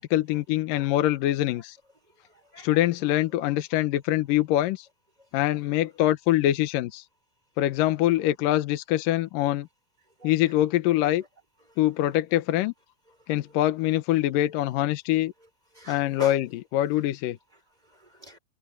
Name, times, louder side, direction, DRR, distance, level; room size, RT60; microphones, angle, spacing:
voice 1, 0.0-1.8 2.6-4.9 5.3-7.0 7.6-9.7 10.2-11.2 11.8-12.7 13.3-15.3 15.9-16.5 16.7-17.4, left 14 dB, 75° left, 2.5 m, -24 dB
voice 2, 2.1-2.8 3.3-3.4 5.2-5.6 10.2-10.3 11.6-11.8 12.1-12.2 13.1-13.3 15.7-16.4 17.5-18.4, right 1 dB, 10° right, 4.9 m, -47 dB
open air
omnidirectional pair, 4.1 m